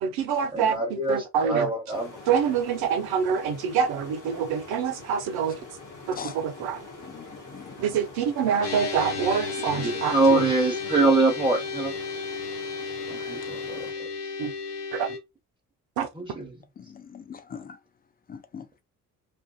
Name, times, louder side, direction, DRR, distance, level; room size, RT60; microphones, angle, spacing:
voice 1, 0.0-1.7 2.3-5.6 6.1-6.8 7.8-10.4 14.4-14.5 14.9-15.2 16.0-16.1, right 7 dB, 55° right, 0.7 m, -26 dB
voice 2, 0.5-2.2 9.7-11.9 13.1-14.1 16.1-16.5, right 3 dB, 10° right, 1.0 m, -24 dB
sound 1, 1.9-13.9, left 3 dB, 40° left, 1.1 m, -45 dB
voice 3, 7.0-7.8 16.8-17.8 18.3-18.7, left 6 dB, 20° left, 0.4 m, -41 dB
sound 2, 8.6-15.2, left 4 dB, 85° left, 0.6 m, -33 dB
2.5 x 2.4 x 2.3 m
figure-of-eight pair, 45°, 45 cm